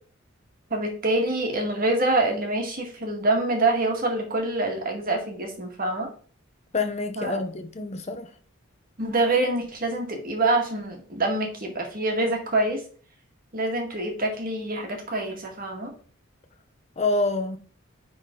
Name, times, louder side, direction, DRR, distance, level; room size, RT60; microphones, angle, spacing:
voice 1, 0.7-6.1 7.2-7.4 9.0-12.8 13.5-15.9, right 2 dB, 45° right, 1.8 m, -25 dB
voice 2, 6.7-8.3 17.0-17.6, left 3 dB, 35° left, 0.7 m, -27 dB
9.7 x 3.9 x 3.8 m
head